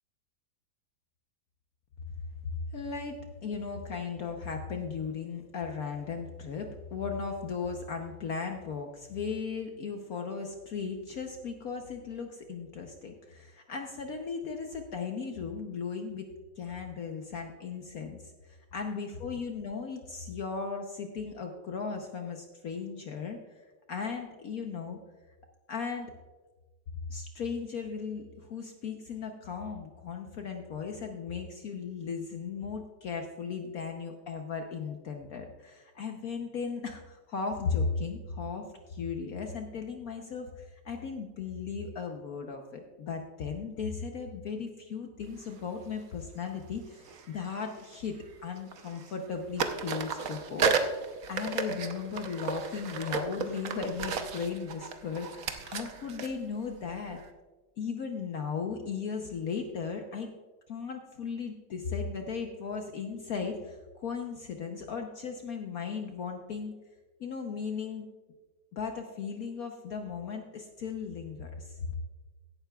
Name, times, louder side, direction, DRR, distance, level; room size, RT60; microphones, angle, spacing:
voice 1, 2.7-16.3 16.6-18.2 18.5-23.4 23.9-25.0 25.7-26.1 27.1-57.2 57.8-60.3 60.7-66.7 67.2-68.1 68.7-71.9, left 5 dB, 60° left, 3 dB, 1.2 m, -36 dB
sound 1, 45.4-45.6 47.0-48.3 48.6-49.3 49.6-57.3, right 5 dB, 55° right, 1.1 m, -34 dB
16.5 x 11.5 x 2.3 m, 1.3 s
omnidirectional pair, 2.0 m